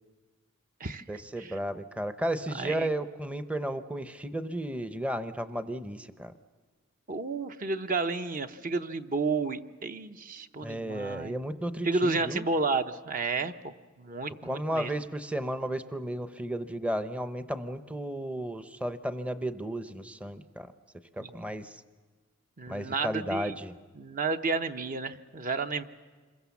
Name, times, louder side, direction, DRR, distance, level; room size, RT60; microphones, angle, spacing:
voice 1, 1.1-6.3 10.6-12.4 14.4-20.7 21.2-21.8 22.7-23.8, right 1 dB, 5° right, 10 dB, 0.7 m, -33 dB
voice 2, 2.5-2.9 7.1-11.4 11.8-14.9 21.2-21.5 22.6-23.5 23.9-25.8, right 3 dB, 40° right, 9 dB, 0.8 m, -31 dB
27.0 x 22.5 x 7.1 m, 1.4 s
head